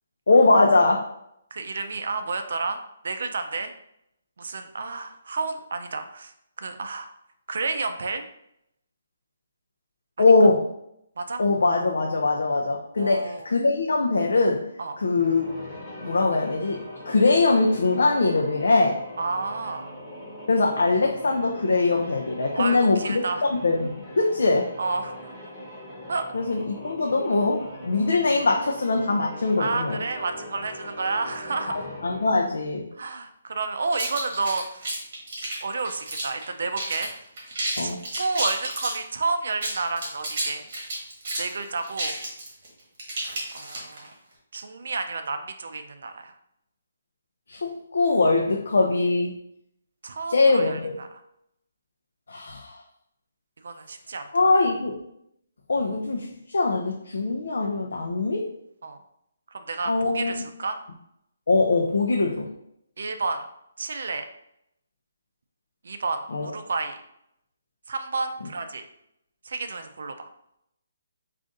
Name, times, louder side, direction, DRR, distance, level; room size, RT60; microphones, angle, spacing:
voice 1, 0.3-1.0 10.2-10.7 11.4-14.7 15.0-15.5 16.0-19.0 20.5-23.2 23.5-24.7 26.3-30.0 31.7-32.9 37.8-38.0 47.5-49.3 50.3-51.0 52.3-52.8 54.3-55.0 55.7-58.5 59.9-60.5 61.5-62.5 66.3-66.5, left 3 dB, 70° left, 1 dB, 0.5 m, -22 dB
voice 2, 1.5-3.7 4.4-6.3 6.6-7.1 7.5-8.2 11.2-11.4 13.0-13.5 14.8-15.0 19.2-19.9 22.5-23.5 24.8-25.3 26.1-26.3 29.6-31.9 33.0-34.8 35.6-37.1 37.8-40.6 41.4-42.2 43.5-44.1 44.5-46.3 50.0-51.1 53.6-54.3 58.8-59.0 59.5-60.8 63.0-63.4 63.8-64.2 65.8-67.0 67.9-68.8 69.5-70.3, right 3 dB, 55° right, 7 dB, 0.4 m, -30 dB
sound 1, 15.0-32.5, left 1 dB, ahead, 0.5 m, -41 dB
sound 2, 33.9-36.4 36.7-37.1 37.4-39.0 39.5-44.1, right 1 dB, 30° right, 1.1 m, -31 dB
3.9 x 2.5 x 3.6 m, 0.77 s
hypercardioid pair, 180°, 0 cm